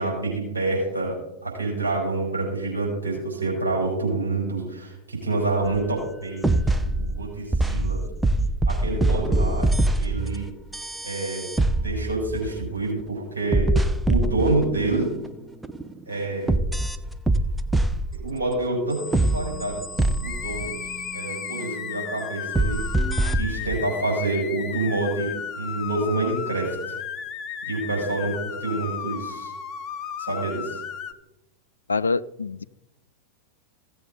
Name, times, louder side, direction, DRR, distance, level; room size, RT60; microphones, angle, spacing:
voice 1, 0.0-8.0 8.6-9.7 10.0-10.5 11.0-13.7 14.1-15.1 16.1-16.5 18.1-22.9 23.3-26.9 27.7-29.5 30.2-30.8, right 2 dB, 75° right, -4 dB, 4.7 m, -27 dB
sound 1, 5.6-5.8 6.4-13.1 13.5-15.3 15.6-16.0 16.5-18.3 18.9-21.7 22.5-23.8, right 1 dB, 5° right, 0.6 m, -24 dB
sound 2, 20.2-31.1, left 8 dB, 35° left, 0.7 m, -34 dB
voice 2, 31.9-32.6, left 4 dB, 75° left, 16 dB, 0.3 m, -25 dB
15.5 x 7.9 x 3.9 m, 0.95 s
figure-of-eight pair, 90°, 0 cm